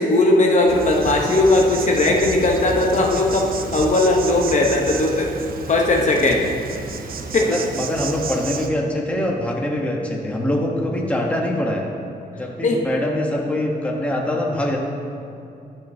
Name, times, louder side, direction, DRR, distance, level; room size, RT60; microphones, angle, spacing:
voice 1, 0.0-3.5 3.7-5.3 5.7-6.4 7.3-7.6 12.6-12.8, left 2 dB, 50° left, 0 dB, 0.9 m, -18 dB
Insect, 0.7-8.7, right 5 dB, 65° right, 0.5 m, -31 dB
voice 2, 6.8-7.1 7.4-11.9 12.4-14.8, left 1 dB, 10° left, -1 dB, 1.0 m, -24 dB
12.0 x 5.2 x 2.7 m, 2.6 s
cardioid pair, 100°, 16 cm